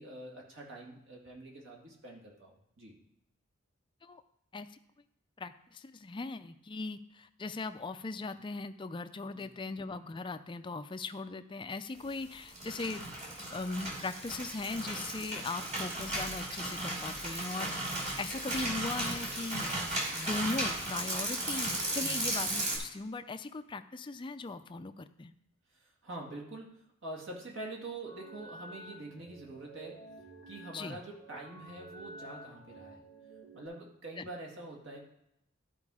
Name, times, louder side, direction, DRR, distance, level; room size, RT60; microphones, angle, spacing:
voice 1, 0.0-3.0 9.3-9.5 22.0-22.2 25.7-26.8 27.0-30.0 30.5-33.0 33.5-35.0, right 2 dB, 60° right, -1 dB, 2.1 m, -45 dB
voice 2, 5.4-13.0 13.5-19.6 20.1-25.3 30.7-31.0 34.2-34.3, left 3 dB, 25° left, 11 dB, 0.4 m, -39 dB
sound 1, 12.3-22.8, right 1 dB, 35° right, 2.4 m, -35 dB
sound 2, 28.1-33.7, right 1 dB, 90° right, 3.1 m, -51 dB
12.5 x 4.5 x 4.9 m, 0.80 s
head